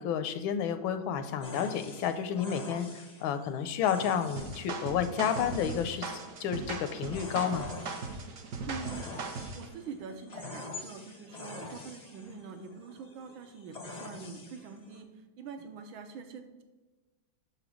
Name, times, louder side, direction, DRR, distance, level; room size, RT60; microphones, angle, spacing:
voice 1, 0.0-6.1 6.4-7.7, left 8 dB, 85° left, 9 dB, 1.4 m, -31 dB
sound 1, 1.4-15.0, left 3 dB, 45° left, 0.5 m, -46 dB
sound 2, 4.4-9.7, right 4 dB, 60° right, 0.8 m, -39 dB
voice 2, 8.6-16.6, right 5 dB, 80° right, 6 dB, 1.6 m, -45 dB
6.5 x 5.0 x 4.9 m, 1.2 s
omnidirectional pair, 2.2 m